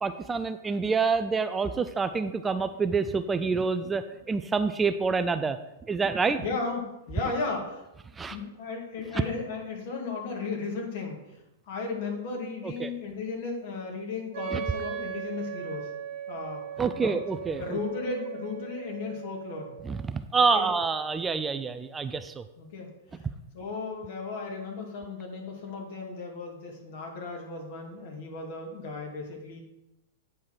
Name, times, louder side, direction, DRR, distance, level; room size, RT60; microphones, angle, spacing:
voice 1, 0.0-5.6 5.9-6.4 8.1-8.4 12.6-12.9 14.5-14.6 16.8-17.8 19.8-22.4, right 4 dB, 15° right, 11 dB, 0.4 m, -27 dB
voice 2, 6.4-7.9 8.3-11.2 11.7-15.9 16.3-16.6 16.9-17.1 17.6-19.7 20.5-20.7 22.6-23.3 23.5-29.6, left 4 dB, 55° left, 0 dB, 2.2 m, -35 dB
Wind instrument woodwind instrument, 14.3-20.0, right 9 dB, 45° right, 1.0 m, -38 dB
9.0 x 4.7 x 4.5 m, 0.93 s
figure-of-eight pair, 105°, 0 cm